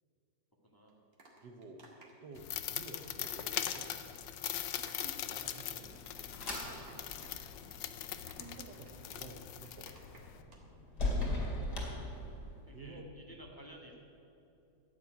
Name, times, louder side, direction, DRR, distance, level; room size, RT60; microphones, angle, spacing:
voice 1, 0.6-0.9 12.7-13.9, right 1 dB, 10° left, -2 dB, 1.6 m, -53 dB
sound 1, 0.9-4.3 4.6-10.6 10.9-11.1, right 2 dB, 50° right, 2.5 m, -59 dB
voice 2, 1.4-1.8 2.2-3.9 4.7-7.1 8.1-10.2 12.7-13.5, right 2 dB, 65° right, 5 dB, 1.6 m, -53 dB
sound 2, 2.3-10.4, left 11 dB, 75° left, 1.4 m, -41 dB
sound 3, 5.4-12.8, left 2 dB, 60° left, 2.9 m, -40 dB
13.5 x 7.3 x 9.4 m, 2.7 s
omnidirectional pair, 2.0 m